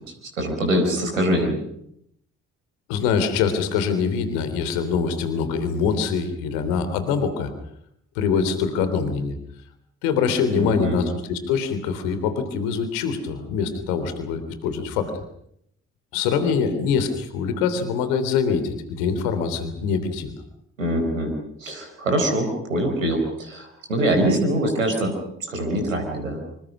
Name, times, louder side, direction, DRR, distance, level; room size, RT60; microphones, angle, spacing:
voice 1, 0.4-1.6 10.5-11.0 20.8-25.1 25.5-26.4, right 1 dB, 90° right, 3 dB, 4.6 m, -23 dB
voice 2, 2.9-7.5 8.2-9.3 10.0-15.1 16.1-20.3, left 6 dB, 75° left, 10 dB, 3.4 m, -24 dB
27.0 x 25.5 x 6.2 m, 0.73 s
figure-of-eight pair, 40°, 38 cm